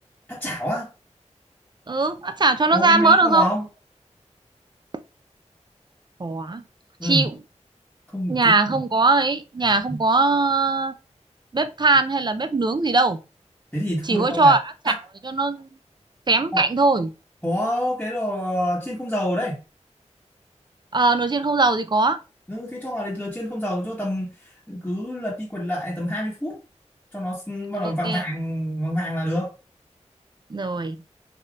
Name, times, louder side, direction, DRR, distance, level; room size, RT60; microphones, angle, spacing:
voice 1, 0.3-0.9 2.7-3.7 7.0-7.3 8.1-8.8 9.9-10.0 13.7-14.6 14.9-15.0 16.5-16.7 17.4-19.6 22.5-26.6 27.1-29.5, equal, 10° left, 1.0 m, -27 dB
voice 2, 1.9-3.5 6.2-6.6 7.0-7.3 8.3-10.9 11.5-13.2 14.1-14.9 15.3-15.7 16.3-17.1 20.9-22.2 28.0-28.2 30.5-31.0, right 3 dB, 40° right, 0.4 m, -20 dB
3.4 x 2.7 x 2.3 m
wide cardioid pair, 55°, 12 cm